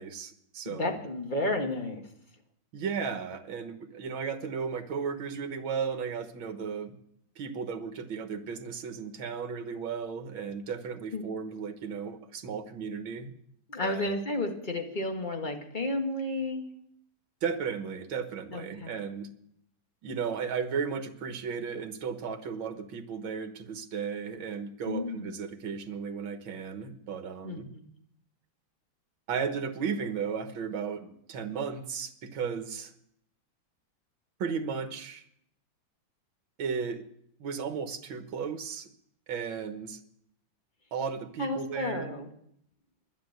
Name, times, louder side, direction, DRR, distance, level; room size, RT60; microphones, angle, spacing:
voice 1, 0.0-1.0 2.7-7.0 7.4-13.3 13.8-14.1 17.4-19.3 20.0-27.7 29.3-32.9 34.4-35.2 36.6-37.0 37.4-38.9 39.3-40.0 40.9-42.1, right 6 dB, 75° right, 7 dB, 2.0 m, -35 dB
voice 2, 0.6-2.0 11.1-11.2 13.7-16.6 18.5-19.0 24.9-25.3 27.4-27.9 41.4-42.3, left 2 dB, 25° left, 3 dB, 1.7 m, -32 dB
11.0 x 11.0 x 7.9 m, 0.72 s
omnidirectional pair, 2.2 m